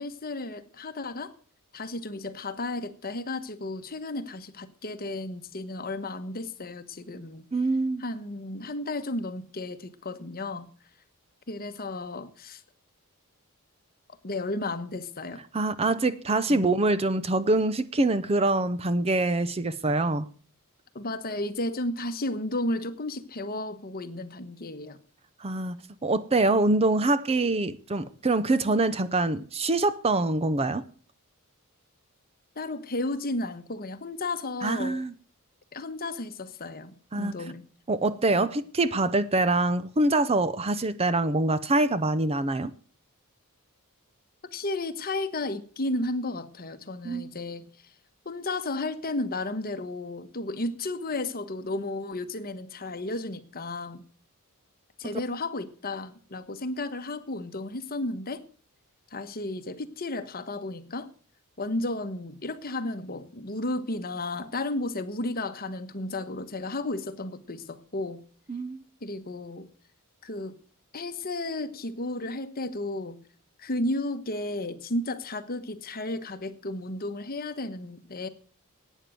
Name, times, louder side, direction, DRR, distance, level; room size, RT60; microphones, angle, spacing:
voice 1, 0.0-1.3 1.7-7.5 8.0-10.7 11.5-12.6 14.2-15.4 16.5-16.7 20.9-25.0 32.6-35.0 35.7-37.6 38.3-38.5 44.5-47.7 48.2-54.0 55.0-58.4 59.1-61.1 61.6-68.2 69.0-69.7 70.2-70.6 70.9-73.2 73.6-78.3, left 2 dB, 40° left, 1.1 m, -33 dB
voice 2, 7.5-8.0 15.5-20.3 25.4-25.8 26.0-30.9 34.6-35.1 37.1-37.3 37.9-42.7 47.0-47.3 68.5-68.8, right 2 dB, 25° right, 0.6 m, -25 dB
12.0 x 9.2 x 7.7 m
head